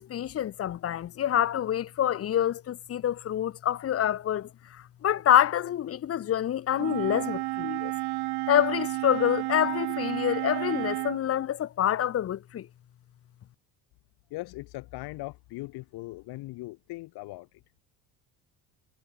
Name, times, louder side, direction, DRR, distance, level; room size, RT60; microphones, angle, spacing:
voice 1, 0.0-7.9 8.5-12.7, left 11 dB, 35° left, 1.7 m, -27 dB
Wind instrument woodwind instrument, 6.8-11.2, right 22 dB, 90° right, 3.1 m, -31 dB
voice 2, 14.3-17.6, left 20 dB, 75° left, 4.3 m, -39 dB
cardioid pair, 165°, 38 cm